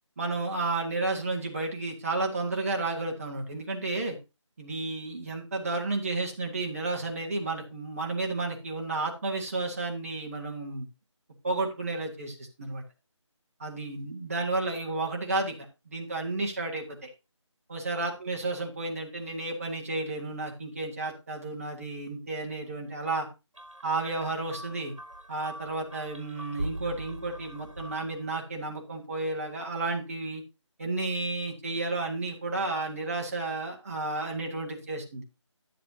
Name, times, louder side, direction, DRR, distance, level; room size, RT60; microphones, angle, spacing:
voice 1, 0.2-4.2 4.6-10.9 11.4-12.8 13.6-17.1 17.7-23.3 23.8-24.9 25.3-30.4 30.8-35.2, right 2 dB, 30° right, 1 dB, 1.5 m, -32 dB
sound 1, 23.5-28.3, right 1 dB, 85° right, 1.3 m, -41 dB
11.0 x 7.5 x 2.8 m, 0.27 s
figure-of-eight pair, 170°, 16 cm